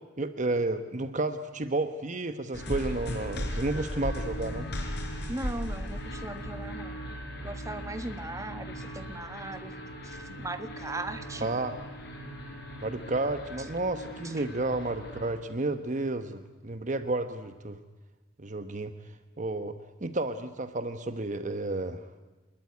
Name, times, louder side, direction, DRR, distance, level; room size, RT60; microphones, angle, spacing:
voice 1, 0.2-4.7 11.4-11.7 12.8-17.8 18.4-18.9 19.4-22.0, right 2 dB, 40° right, 9 dB, 1.1 m, -31 dB
sound 1, 2.5-15.3, equal, 60° left, 5.2 m, -38 dB
voice 2, 5.3-7.0 7.4-9.8 10.0-11.5 14.2-14.4, right 2 dB, 15° right, 8 dB, 1.6 m, -38 dB
26.0 x 21.0 x 9.6 m, 1.3 s
head